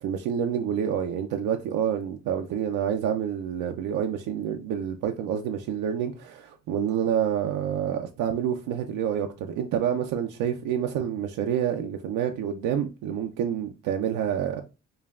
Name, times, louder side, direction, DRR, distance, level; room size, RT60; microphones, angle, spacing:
voice 1, 0.0-14.6, right 9 dB, 85° right, 0.5 m, -28 dB
5.3 x 2.3 x 2.3 m
cardioid pair, 90°, 30 cm